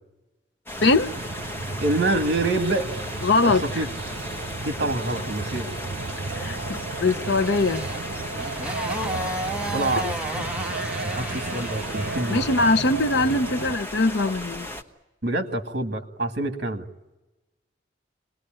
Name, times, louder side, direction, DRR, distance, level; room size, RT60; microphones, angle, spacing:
sound 1, 0.7-14.8, left 1 dB, 10° left, 1.3 m, -36 dB
voice 1, 0.8-1.1 3.2-3.6 6.4-7.8 10.4-10.5 12.3-14.7, left 2 dB, 65° left, 0.8 m, -22 dB
sound 2, 0.8-13.8, right 3 dB, 75° right, 0.9 m, -34 dB
voice 2, 1.8-2.9 3.4-3.9 4.6-5.7 9.0-9.1 9.7-10.1 11.0-12.4 15.2-16.9, right 2 dB, 55° right, 2.0 m, -26 dB
Motorcycle, 6.7-12.8, right 1 dB, 5° right, 1.1 m, -34 dB
26.5 x 20.0 x 9.0 m
head